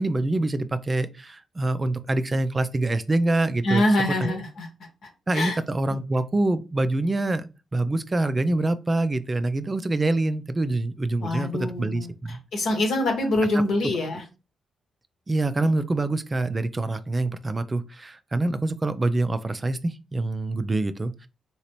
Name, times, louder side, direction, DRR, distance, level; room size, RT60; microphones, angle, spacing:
voice 1, 0.0-3.8 4.2-4.3 5.3-12.4 15.3-21.3, right 2 dB, 30° right, 0.4 m, -25 dB
voice 2, 3.6-4.7 5.3-5.6 5.9-6.0 11.2-14.2, left 1 dB, 70° left, 1.0 m, -25 dB
3.1 x 2.9 x 2.9 m
hypercardioid pair, 40°, 0 cm